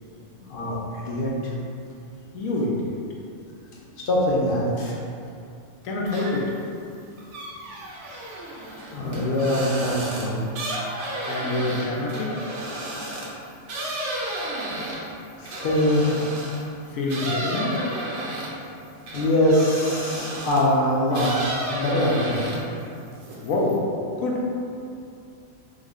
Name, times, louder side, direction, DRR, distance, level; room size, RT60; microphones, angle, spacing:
voice 1, 2.3-3.0 5.8-6.5 11.3-12.3 16.9-17.8 23.4-23.8 24.2-24.4, left 2 dB, 85° left, -2 dB, 1.0 m, -26 dB
voice 2, 4.0-4.9 8.9-10.4 15.4-16.2 19.1-22.5, left 1 dB, 55° left, -4 dB, 0.7 m, -23 dB
sound 1, 6.1-6.6 6.9-16.7 17.1-20.7 21.1-22.8 23.1-23.8, right 1 dB, 65° right, 0.9 m, -32 dB
3.5 x 2.1 x 3.6 m, 2.5 s
omnidirectional pair, 1.4 m